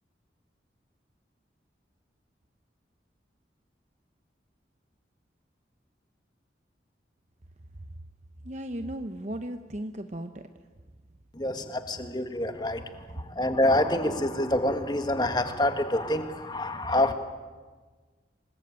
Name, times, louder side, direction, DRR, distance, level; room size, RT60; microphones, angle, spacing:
voice 1, 8.4-10.4, right 1 dB, 40° right, 7 dB, 0.9 m, -36 dB
voice 2, 11.3-17.1, left 1 dB, 25° left, 7 dB, 1.8 m, -27 dB
27.0 x 20.0 x 8.9 m, 1.4 s
head